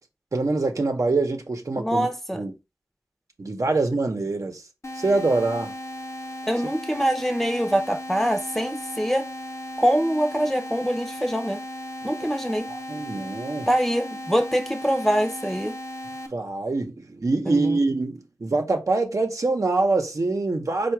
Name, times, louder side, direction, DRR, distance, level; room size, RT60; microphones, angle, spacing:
voice 1, 0.3-2.1 2.3-2.5 3.4-4.6 5.0-5.7 12.7-13.7 16.3-20.9, right 3 dB, 65° right, 0.9 m, -24 dB
voice 2, 1.8-2.4 6.5-9.2 9.8-11.6 12.0-12.7 13.7-15.7 17.5-17.8, equal, 5° left, 0.7 m, -24 dB
sound 1, 4.8-16.3, left 1 dB, 55° left, 0.8 m, -36 dB
4.7 x 2.3 x 4.6 m
wide cardioid pair, 60°, 6 cm